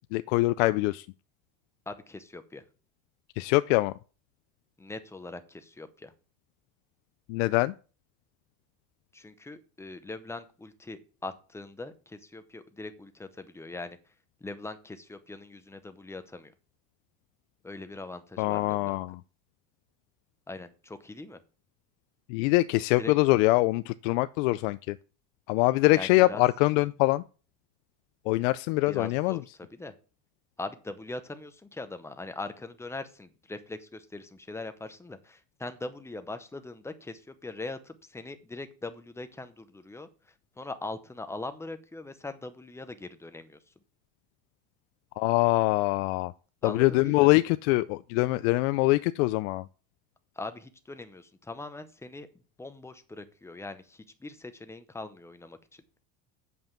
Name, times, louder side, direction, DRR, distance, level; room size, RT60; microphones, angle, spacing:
voice 1, 0.1-1.1 3.4-3.9 7.3-7.7 18.4-19.2 22.3-25.0 25.5-27.2 28.3-29.4 45.2-46.3 46.6-49.6, left 20 dB, 85° left, 0.5 m, -24 dB
voice 2, 1.9-2.6 4.8-6.1 9.1-14.0 14.4-16.5 17.6-19.0 20.5-21.4 23.0-23.1 25.9-26.4 28.9-29.9 30.6-40.1 40.6-43.6 46.6-47.3 50.4-52.3 52.6-55.8, left 2 dB, 5° left, 0.8 m, -41 dB
7.9 x 5.5 x 7.2 m
cardioid pair, 145°, 37 cm